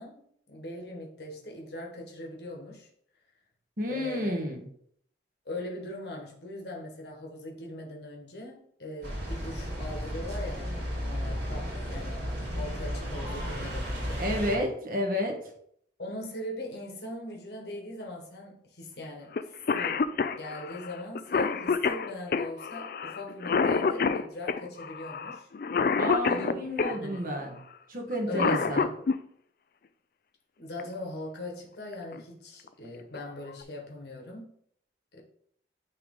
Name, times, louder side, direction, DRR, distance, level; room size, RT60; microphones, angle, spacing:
voice 1, 0.0-2.9 3.9-4.4 5.4-14.2 16.0-20.1 20.4-25.5 26.2-26.6 26.9-27.2 28.3-29.0 30.6-34.5 35.1-35.2, left 1 dB, 70° left, 1.3 m, -41 dB
voice 2, 3.8-4.7 14.2-15.3 26.0-27.6 27.9-28.9, equal, 50° right, 1.4 m, -30 dB
sound 1, 9.0-14.6, equal, 70° right, 2.5 m, -34 dB
Cough, 19.4-19.5 19.7-27.0 28.1-29.2 30.8-30.9 31.9-32.2 32.7-32.8 33.2-33.6, left 5 dB, 50° left, 0.3 m, -27 dB
9.3 x 3.3 x 3.7 m
head